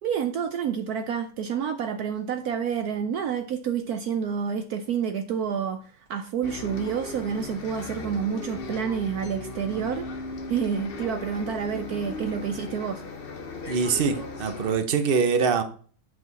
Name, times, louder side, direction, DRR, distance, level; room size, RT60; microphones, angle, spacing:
voice 1, 0.0-10.1 10.5-13.0, right 7 dB, 70° right, 1.0 m, -29 dB
Bus, 6.4-14.8, left 3 dB, 40° left, 0.9 m, -37 dB
voice 2, 13.7-15.6, right 5 dB, 40° right, 0.8 m, -23 dB
8.4 x 5.1 x 4.0 m
omnidirectional pair, 2.0 m